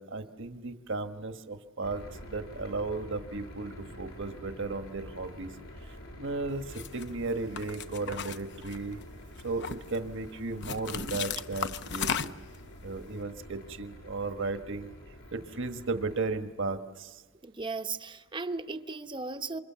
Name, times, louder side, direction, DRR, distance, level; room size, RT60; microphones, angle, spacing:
voice 1, 0.0-2.0 2.3-5.5 6.2-9.0 9.4-12.3 12.8-14.9 15.3-17.2, right 3 dB, 60° right, 7 dB, 1.4 m, -35 dB
sound 1, 1.8-16.4, equal, 80° left, 7.3 m, -48 dB
sound 2, 6.7-7.0 7.6-9.0 9.4-10.0 10.6-12.6, left 7 dB, 55° left, 0.8 m, -35 dB
voice 2, 17.4-19.6, right 3 dB, 25° right, 9 dB, 0.9 m, -36 dB
28.0 x 25.0 x 7.4 m, 1.5 s
head